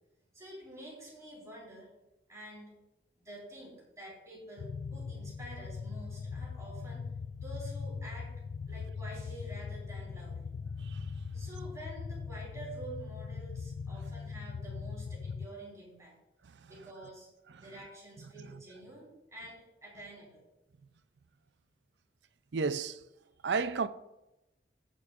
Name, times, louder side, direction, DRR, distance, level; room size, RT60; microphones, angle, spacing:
voice 1, 0.3-1.9 2.3-2.7 3.2-7.0 7.4-8.3 8.7-10.5 11.3-16.2 16.7-17.3 17.6-20.5, right 1 dB, 20° right, 3.8 m, -48 dB
sound 1, 4.6-15.5, left 5 dB, 75° left, 0.4 m, -40 dB
voice 2, 10.8-11.2 16.4-16.7 17.5-17.7 18.4-18.6 22.5-23.0 23.4-23.9, right 4 dB, 75° right, 0.5 m, -34 dB
18.5 x 6.5 x 2.5 m
head